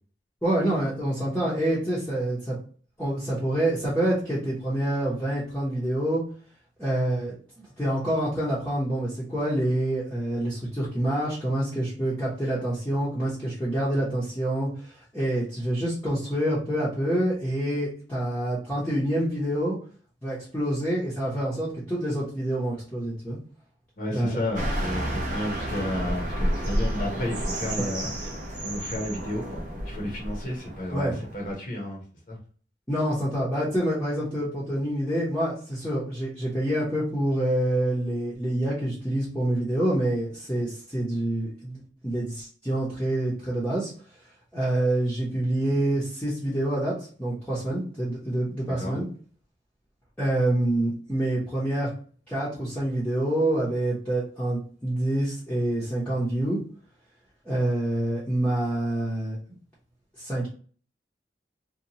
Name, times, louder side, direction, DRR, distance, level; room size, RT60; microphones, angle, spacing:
voice 1, 0.4-2.6 3.0-6.2 6.8-19.8 20.2-23.4 24.1-24.4 27.8-27.9 30.9-31.1 32.9-43.9 44.5-49.0 50.2-51.9 52.3-56.6 57.4-59.4 60.2-60.5, right 1 dB, 10° left, -9 dB, 0.7 m, -27 dB
voice 2, 24.0-28.3 28.6-32.0 32.3-32.4 48.8-49.0, left 1 dB, 45° left, -2 dB, 0.8 m, -32 dB
sound 1, 24.5-31.6, right 1 dB, 45° right, 0.8 m, -31 dB
2.8 x 2.2 x 2.7 m, 0.43 s
head